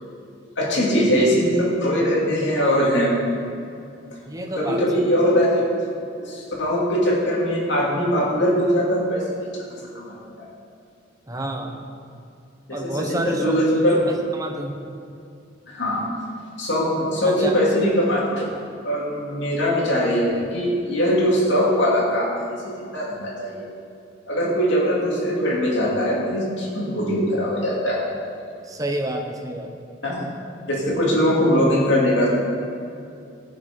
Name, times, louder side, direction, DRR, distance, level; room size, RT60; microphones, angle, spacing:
voice 1, 0.6-3.2 4.6-5.6 6.1-9.6 9.9-10.5 12.7-14.0 15.7-16.1 16.6-18.5 18.8-22.5 22.9-23.7 24.3-28.1 30.0-30.2 30.7-32.3, equal, 65° left, -4 dB, 2.7 m, -21 dB
voice 2, 4.3-5.0 11.3-11.7 12.7-13.4 13.9-14.8 17.2-17.5 28.7-29.7, right 1 dB, 20° right, 2 dB, 0.9 m, -29 dB
14.5 x 6.2 x 5.3 m, 2.5 s
head